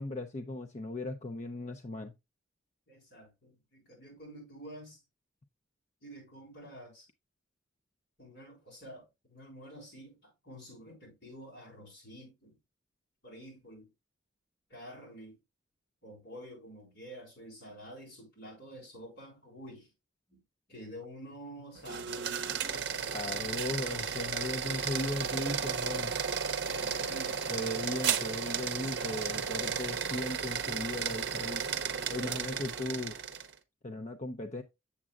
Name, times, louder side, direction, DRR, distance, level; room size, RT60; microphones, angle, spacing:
voice 1, 0.0-2.1 23.1-26.2 27.5-31.7 32.1-33.1 33.8-34.6, left 2 dB, 35° left, 0.5 m, -37 dB
voice 2, 2.9-5.0 6.0-7.1 8.2-12.6 13.2-13.9 14.7-15.4 16.0-19.9 20.3-20.4 20.7-22.5 26.7-27.4, equal, 55° left, 5.3 m, -49 dB
sound 1, 21.8-33.5, right 6 dB, 55° right, 0.7 m, -34 dB
7.4 x 7.2 x 2.4 m
head